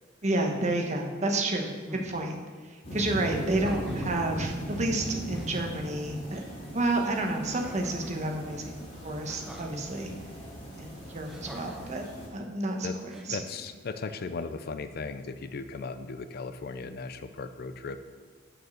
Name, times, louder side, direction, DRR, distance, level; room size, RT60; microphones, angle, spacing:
voice 1, 0.2-1.7 2.0-2.4 2.9-6.5 6.7-8.7 9.0-10.1 10.7-12.1 12.3-13.4, right 2 dB, 35° right, 2 dB, 1.2 m, -30 dB
sound 1, 1.9-2.2 3.4-4.2 4.9-5.0 5.3-5.8 7.4-8.2 9.3-9.7 11.3-11.9 13.1-13.7, equal, ahead, 0.8 m, -46 dB
sound 2, 2.8-12.3, equal, 35° left, 3.1 m, -39 dB
voice 2, 13.3-18.0, left 4 dB, 50° left, 10 dB, 0.5 m, -37 dB
9.3 x 6.5 x 6.4 m, 1.5 s
head